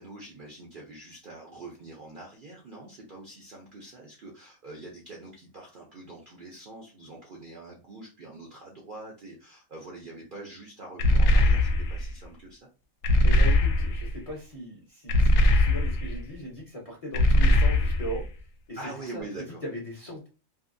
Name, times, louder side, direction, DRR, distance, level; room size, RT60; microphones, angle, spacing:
voice 1, 0.0-12.6 18.7-19.6, right 2 dB, 55° right, -1 dB, 0.6 m, -44 dB
sound 1, 11.0-12.1 13.0-14.1 15.1-16.2 17.1-18.2, left 1 dB, 75° left, 0.9 m, -21 dB
voice 2, 13.2-18.2 18.7-19.3 19.6-20.3, equal, 35° left, -2 dB, 0.7 m, -38 dB
2.7 x 2.6 x 2.5 m, 0.32 s
omnidirectional pair, 1.5 m